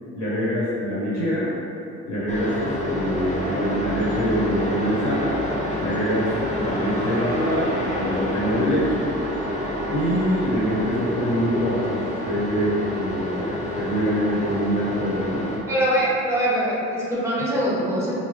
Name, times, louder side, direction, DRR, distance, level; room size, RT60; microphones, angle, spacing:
voice 1, 0.1-1.5 2.1-5.3 5.8-9.1 9.9-15.5, equal, 60° left, -10 dB, 1.2 m, -25 dB
sound 1, 2.3-15.6, equal, 25° left, 0.7 m, -28 dB
voice 2, 15.7-18.1, equal, 10° right, -7 dB, 1.0 m, -23 dB
3.3 x 2.2 x 3.3 m, 2.8 s
cardioid pair, 90°, 30 cm